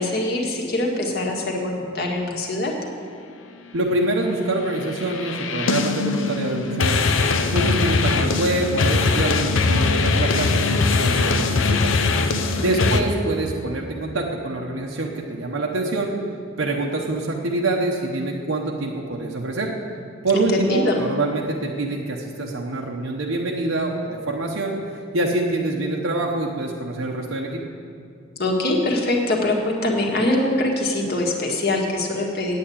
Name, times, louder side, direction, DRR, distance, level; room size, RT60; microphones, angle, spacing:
voice 1, 0.0-2.7 12.5-13.0 20.3-21.0 28.3-32.6, left 1 dB, 55° left, 0 dB, 1.7 m, -23 dB
voice 2, 3.7-7.0 7.5-12.0 12.6-16.1 16.6-19.7 20.2-24.8 25.1-27.6, right 2 dB, 90° right, -1 dB, 1.0 m, -25 dB
sound 1, 4.6-13.0, left 4 dB, 75° left, 0.7 m, -21 dB
8.6 x 8.4 x 8.5 m, 2.4 s
head